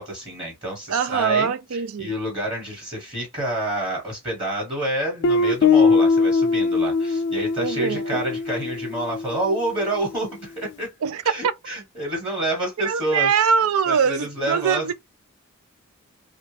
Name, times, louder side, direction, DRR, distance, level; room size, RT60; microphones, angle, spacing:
voice 1, 0.0-1.5 2.0-10.9 11.2-13.3 13.9-14.9, right 1 dB, 25° right, 1.3 m, -28 dB
voice 2, 0.9-2.1 7.6-8.3 11.0-11.5 12.8-14.9, right 6 dB, 80° right, 0.4 m, -23 dB
Guitar, 5.2-9.9, left 4 dB, 55° left, 0.3 m, -21 dB
3.1 x 2.3 x 3.3 m
head